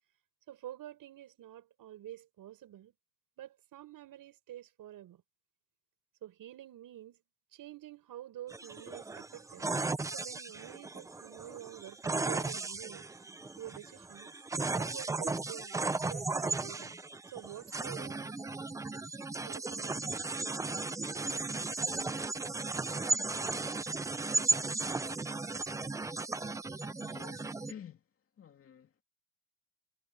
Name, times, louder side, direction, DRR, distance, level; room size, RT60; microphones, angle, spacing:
voice 1, 0.5-2.9 3.4-5.2 6.2-7.2 7.5-9.7 10.1-13.1 13.6-14.3 14.7-15.8 16.0-17.0 17.3-18.3 19.4-20.1, right 12 dB, 45° right, 5.5 m, -48 dB
sound 1, 8.5-27.7, right 3 dB, 5° right, 0.5 m, -35 dB
voice 2, 27.0-28.0 28.4-29.0, left 8 dB, 30° left, 2.7 m, -51 dB
cardioid pair, 145°, 48 cm